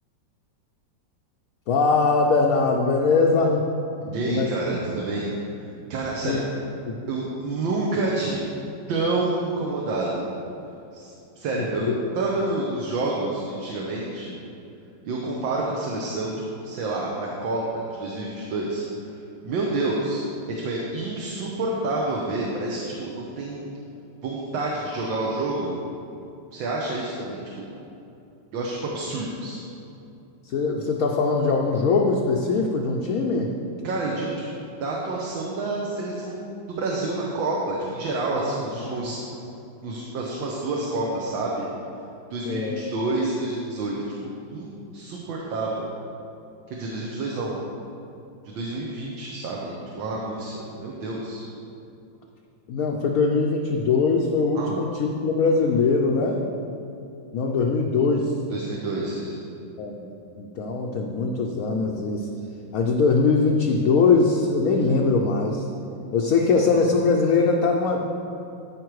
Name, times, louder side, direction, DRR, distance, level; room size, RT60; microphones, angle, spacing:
voice 1, 1.7-3.7 4.3-4.5 6.2-6.4 11.5-12.1 30.4-33.5 38.3-38.5 38.9-39.1 42.4-42.8 52.7-56.4 57.3-58.3 59.8-60.1 60.4-62.3 62.7-65.6 66.1-68.0, left 4 dB, 65° left, 0 dB, 0.9 m, -22 dB
voice 2, 4.0-5.3 5.9-6.4 7.1-8.4 8.9-10.2 10.9-11.9 12.2-14.4 15.0-16.3 16.6-18.8 19.4-20.2 20.6-23.7 24.2-25.8 26.5-27.7 28.5-29.6 33.8-39.2 39.8-41.7 42.3-43.9 44.2-45.9 46.7-47.6 48.5-51.4 54.6-54.7 58.5-59.4, right 2 dB, 80° right, -3 dB, 1.7 m, -28 dB
13.5 x 5.1 x 4.7 m, 2.7 s
omnidirectional pair, 2.1 m